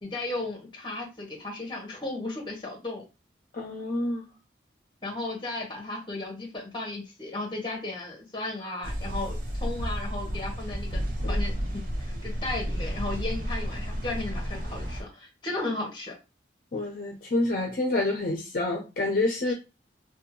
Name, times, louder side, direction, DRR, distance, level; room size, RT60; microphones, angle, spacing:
voice 1, 0.0-3.0 5.0-16.2 19.5-19.6, left 2 dB, 25° left, 1 dB, 0.8 m, -35 dB
voice 2, 3.5-4.3 11.2-11.4 16.7-19.5, left 2 dB, 50° left, 1 dB, 0.5 m, -28 dB
sound 1, 8.8-15.0, equal, 50° right, 0.5 m, -31 dB
2.6 x 2.1 x 2.8 m, 0.28 s
head